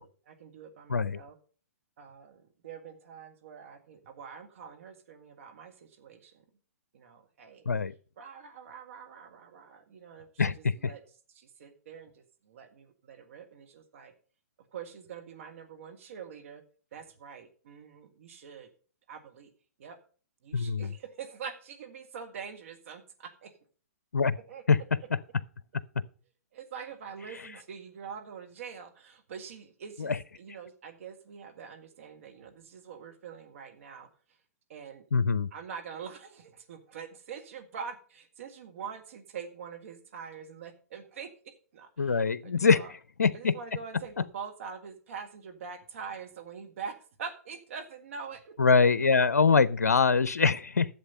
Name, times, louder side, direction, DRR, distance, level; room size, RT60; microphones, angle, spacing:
voice 1, 0.0-1.4 2.0-6.4 6.9-7.7 8.2-11.0 11.3-14.1 14.7-16.6 16.9-18.7 19.1-19.5 19.8-20.0 20.4-23.5 24.5-25.1 26.5-34.4 34.7-35.1 35.5-42.9 43.3-48.6, right 6 dB, 55° right, 1.7 m, -44 dB
voice 2, 10.4-10.7 20.5-20.9 24.1-24.4 24.7-24.8 30.0-30.2 35.1-35.5 42.0-42.8 43.2-43.5 48.6-50.9, left 5 dB, 80° left, 0.5 m, -23 dB
11.0 x 7.4 x 5.4 m
figure-of-eight pair, 120°, 8 cm